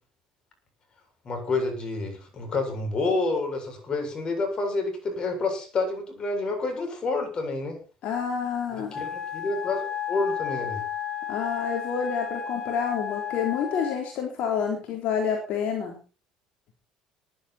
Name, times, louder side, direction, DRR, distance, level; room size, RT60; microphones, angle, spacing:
voice 1, 1.2-7.8 8.7-10.8, left 3 dB, 40° left, 4 dB, 7.5 m, -29 dB
voice 2, 8.0-9.0 11.3-16.0, left 7 dB, 65° left, 1 dB, 3.9 m, -28 dB
Wind instrument woodwind instrument, 8.9-14.1, left 10 dB, 20° left, 2.5 m, -33 dB
19.5 x 11.5 x 4.5 m, 0.36 s
supercardioid pair, 90°, 2 cm